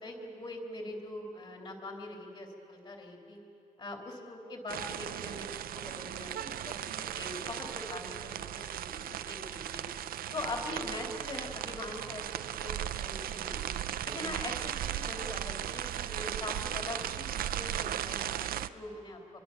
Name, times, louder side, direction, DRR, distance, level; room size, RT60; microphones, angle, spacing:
voice 1, 0.0-3.4 3.8-5.5 5.7-9.8 10.3-13.6 14.0-19.2, left 2 dB, 35° left, 1 dB, 3.6 m, -42 dB
sound 1, 4.7-18.7, right 11 dB, 85° right, 0.6 m, -37 dB
24.5 x 23.5 x 6.9 m, 2.6 s
wide cardioid pair, 150°, 15 cm